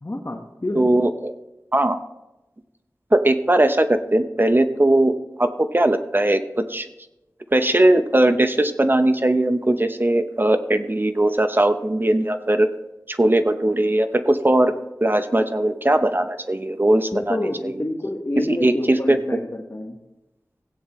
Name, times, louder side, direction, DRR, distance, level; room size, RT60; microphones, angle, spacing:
voice 1, 0.0-0.9 17.1-20.0, left 1 dB, 40° left, 1 dB, 1.5 m, -28 dB
voice 2, 0.7-1.3 1.7-2.0 3.1-5.1 5.4-6.9 7.5-12.7 13.1-14.7 15.0-17.7 18.4-19.2, right 1 dB, 30° right, 9 dB, 0.8 m, -19 dB
16.0 x 9.3 x 3.2 m, 0.96 s
wide cardioid pair, 55°, 7 cm